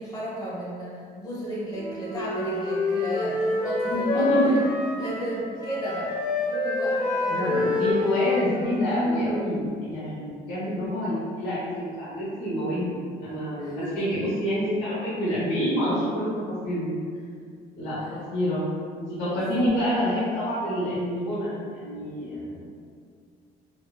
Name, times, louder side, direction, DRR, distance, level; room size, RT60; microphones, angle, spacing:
voice 1, 0.0-4.6 5.0-6.1 6.5-7.6 13.6-14.1 18.0-18.1 19.2-19.8, equal, 20° left, -6 dB, 1.0 m, -34 dB
Wind instrument woodwind instrument, 1.7-5.3 5.6-9.5, left 2 dB, 55° left, 0.7 m, -27 dB
voice 2, 3.9-4.5 7.3-13.0 13.2-16.9 17.8-18.6 19.0-22.6, equal, 90° left, -10 dB, 0.8 m, -27 dB
3.5 x 2.1 x 2.3 m, 2.1 s
cardioid pair, 110°, 17 cm